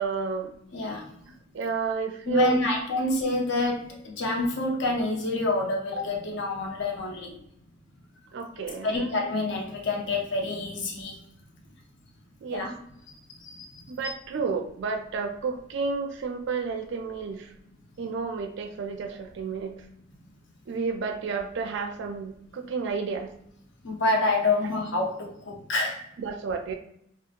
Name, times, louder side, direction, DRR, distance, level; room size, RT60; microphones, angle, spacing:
voice 1, 0.0-0.5 1.2-2.6 8.3-9.1 12.4-12.7 13.9-17.5 18.0-19.8 20.7-23.3 26.2-26.7, right 5 dB, 65° right, 5 dB, 0.4 m, -31 dB
voice 2, 0.7-1.0 2.3-7.3 8.8-11.2 12.5-12.7 13.3-13.8 23.8-26.0, left 2 dB, 65° left, 1 dB, 0.6 m, -27 dB
2.8 x 2.0 x 2.4 m, 0.75 s
head